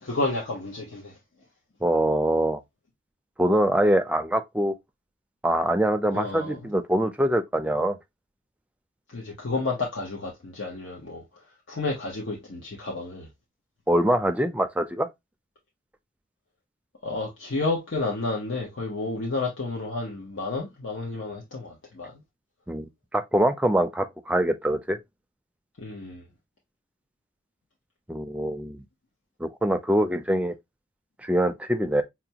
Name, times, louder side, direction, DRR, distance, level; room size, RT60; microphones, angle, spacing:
voice 1, 0.0-1.1 6.1-6.6 9.1-11.2 11.7-13.3 17.0-22.1 25.8-26.2, left 3 dB, 85° left, 0.9 m, -31 dB
voice 2, 1.8-2.6 3.4-4.7 5.4-8.0 13.9-15.1 22.7-22.9 23.1-25.0 28.1-28.8 29.4-30.5 31.2-32.0, right 1 dB, 5° right, 0.4 m, -24 dB
5.8 x 2.2 x 2.8 m
head